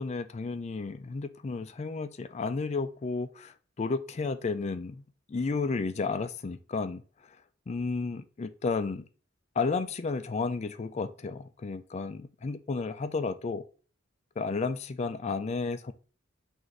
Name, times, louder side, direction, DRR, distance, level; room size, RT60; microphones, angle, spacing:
voice 1, 0.0-7.4 7.7-9.0 9.6-13.6 14.4-15.9, left 4 dB, 35° left, 12 dB, 0.4 m, -32 dB
6.0 x 2.6 x 3.3 m, 0.38 s
head